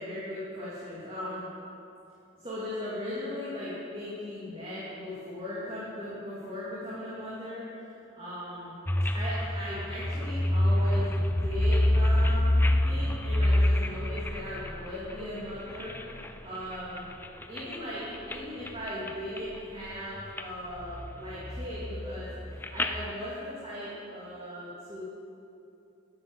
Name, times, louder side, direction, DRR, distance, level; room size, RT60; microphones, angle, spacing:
voice 1, 0.0-1.5 2.4-8.7 9.1-17.1 17.5-25.0, equal, 30° right, -10 dB, 2.9 m, -38 dB
sound 1, 8.9-16.3 16.7-17.8 18.1-18.4 18.7-19.5 19.9-20.4 20.8-23.1, left 1 dB, 10° left, 0.4 m, -27 dB
11.0 x 11.0 x 7.4 m, 2.8 s
head